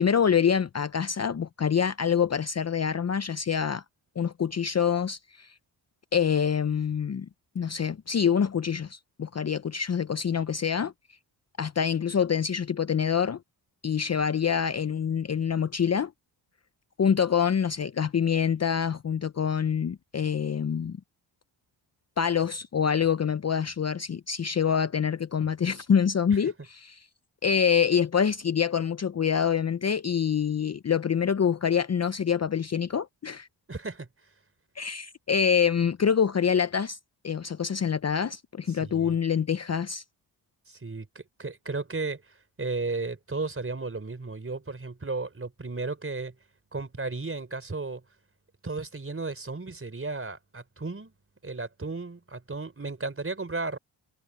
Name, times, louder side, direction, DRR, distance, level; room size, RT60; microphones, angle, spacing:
voice 1, 0.0-3.8 4.2-5.5 6.1-7.3 7.5-10.9 11.6-13.4 13.8-16.1 17.0-21.0 22.2-27.0 27.4-33.5 34.8-37.0 37.2-40.0, left 7 dB, 35° left, 0.7 m, -26 dB
voice 2, 33.7-34.1 38.8-39.2 40.7-46.3 46.7-48.0 48.6-51.1 51.4-53.8, right 3 dB, 30° right, 4.0 m, -34 dB
cardioid pair, 60°, 45 cm